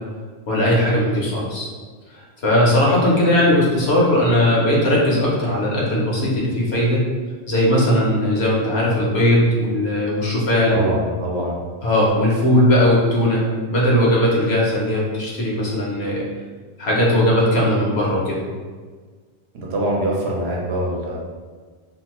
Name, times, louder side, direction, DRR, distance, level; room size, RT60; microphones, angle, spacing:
voice 1, 0.5-1.7 2.1-7.0 7.5-10.8 11.8-16.2 16.8-18.4, left 1 dB, 70° left, -5 dB, 1.1 m, -18 dB
voice 2, 10.7-11.6 19.5-21.2, right 1 dB, 70° right, -2 dB, 0.9 m, -23 dB
2.8 x 2.4 x 2.9 m, 1.5 s
omnidirectional pair, 1.1 m